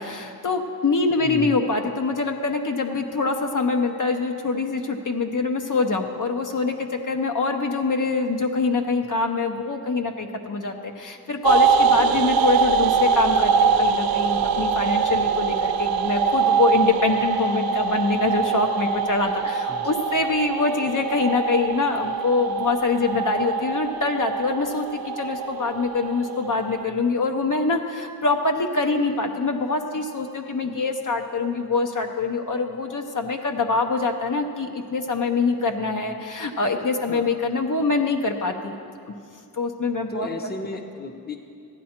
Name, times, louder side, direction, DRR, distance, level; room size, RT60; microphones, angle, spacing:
voice 1, 0.0-38.8 39.1-39.2 39.5-40.3, left 3 dB, 55° left, 4 dB, 0.7 m, -24 dB
voice 2, 1.1-1.5 12.0-12.2 19.7-19.9 37.1-37.3 40.1-41.4, left 2 dB, 25° left, 5 dB, 0.8 m, -33 dB
sound 1, 11.4-26.8, right 6 dB, 70° right, 0.5 m, -23 dB
14.5 x 9.5 x 4.3 m, 2.6 s
wide cardioid pair, 115°, 37 cm